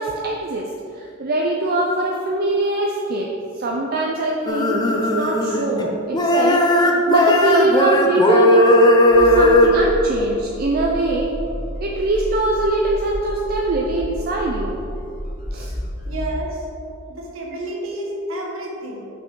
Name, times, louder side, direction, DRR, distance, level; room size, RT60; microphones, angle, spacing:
voice 1, 0.0-3.3 3.5-11.3 11.8-14.8 15.5-15.7, right 2 dB, 50° right, -1 dB, 0.5 m, -22 dB
sound 1, 4.5-5.9 6.1-9.7, left 1 dB, 20° left, 0.5 m, -16 dB
sound 2, 9.1-16.4, equal, 45° left, 1.3 m, -31 dB
voice 2, 16.1-16.7 17.1-19.1, right 1 dB, 85° right, -1 dB, 1.1 m, -30 dB
6.2 x 5.7 x 3.8 m, 2.6 s
head